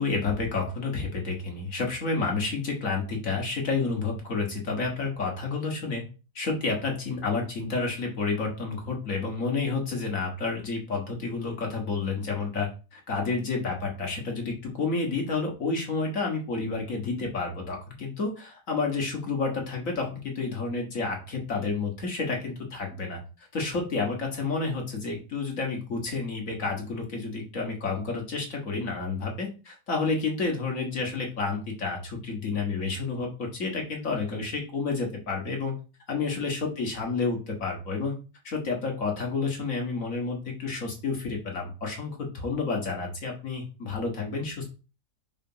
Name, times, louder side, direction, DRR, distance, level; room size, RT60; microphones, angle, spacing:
voice 1, 0.0-6.0 6.4-23.2 23.5-35.7 36.1-38.2 38.4-44.6, left 4 dB, 50° left, 1 dB, 1.9 m, -30 dB
4.9 x 3.6 x 5.6 m, 0.32 s
omnidirectional pair, 1.9 m